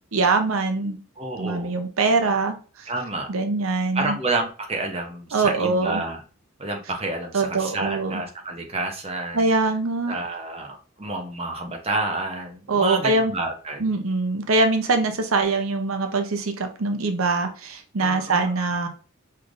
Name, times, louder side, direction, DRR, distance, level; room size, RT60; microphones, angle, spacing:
voice 1, 0.1-1.0 1.4-2.9 3.3-4.1 5.3-6.0 7.3-8.2 9.3-10.1 12.7-13.3 13.8-18.9, right 3 dB, 90° right, 6 dB, 0.7 m, -23 dB
voice 2, 1.2-1.8 2.9-3.3 3.9-6.2 6.6-9.4 10.1-13.9 18.0-18.7, right 2 dB, 30° right, 2 dB, 0.8 m, -29 dB
5.6 x 3.2 x 2.5 m, 0.37 s
head